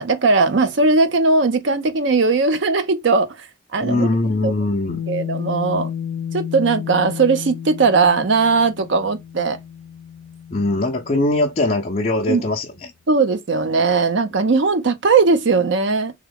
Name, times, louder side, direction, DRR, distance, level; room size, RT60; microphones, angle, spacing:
voice 1, 0.0-3.5 3.7-4.1 4.4-4.5 5.1-5.9 6.3-9.6 12.3-12.4 13.1-16.1, right 4 dB, 65° right, 0.5 m, -18 dB
voice 2, 3.8-5.0 10.5-12.9, left 2 dB, 35° left, 0.5 m, -21 dB
sound 1, 4.9-11.6, left 8 dB, 90° left, 0.4 m, -32 dB
3.5 x 2.2 x 3.4 m
head